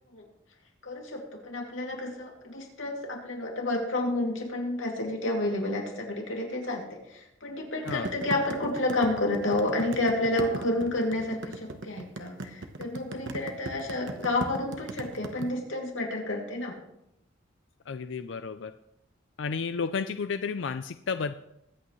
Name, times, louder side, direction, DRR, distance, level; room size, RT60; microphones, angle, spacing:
voice 1, 0.8-16.7, left 2 dB, 80° left, 0 dB, 2.6 m, -30 dB
sound 1, 7.9-15.5, right 2 dB, 70° right, 1.1 m, -37 dB
voice 2, 17.9-18.7 19.4-21.3, left 5 dB, 65° left, 10 dB, 0.4 m, -32 dB
22.0 x 8.5 x 3.2 m, 0.83 s
head